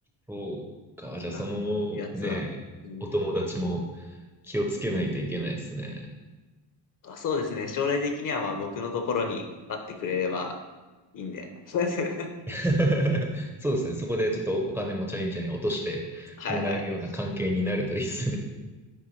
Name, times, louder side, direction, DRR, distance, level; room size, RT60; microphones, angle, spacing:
voice 1, 0.3-0.6 1.0-2.5 3.0-4.2 4.4-6.1 12.5-18.4, right 1 dB, 5° right, 1 dB, 0.5 m, -29 dB
voice 2, 1.9-2.4 2.8-3.1 7.0-10.6 11.1-12.3 16.4-16.8, left 4 dB, 45° left, 5 dB, 0.7 m, -30 dB
9.3 x 3.4 x 3.1 m, 1.2 s
cardioid pair, 125°, 45 cm